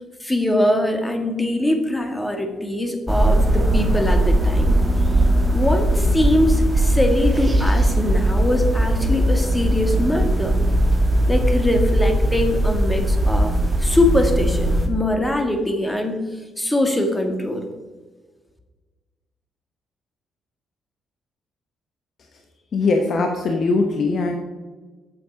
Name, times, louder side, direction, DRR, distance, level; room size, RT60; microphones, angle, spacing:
voice 1, 0.2-4.7 5.5-10.6 11.3-17.6, left 1 dB, 10° left, 5 dB, 1.6 m, -22 dB
sound 1, 3.1-14.9, right 1 dB, 15° right, 1.4 m, -19 dB
voice 2, 22.7-24.4, left 3 dB, 55° left, 3 dB, 1.0 m, -20 dB
8.2 x 7.6 x 5.1 m, 1.3 s
cardioid pair, 90°, 0 cm